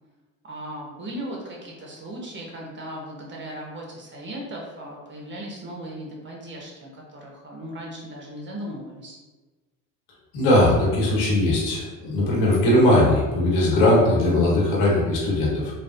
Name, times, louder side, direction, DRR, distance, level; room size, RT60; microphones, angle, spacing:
voice 1, 0.4-9.2, right 1 dB, 30° right, -2 dB, 1.1 m, -37 dB
voice 2, 10.3-15.7, left 1 dB, 75° left, -5 dB, 1.5 m, -19 dB
3.1 x 2.5 x 2.6 m, 1.2 s
supercardioid pair, 80°, 39 cm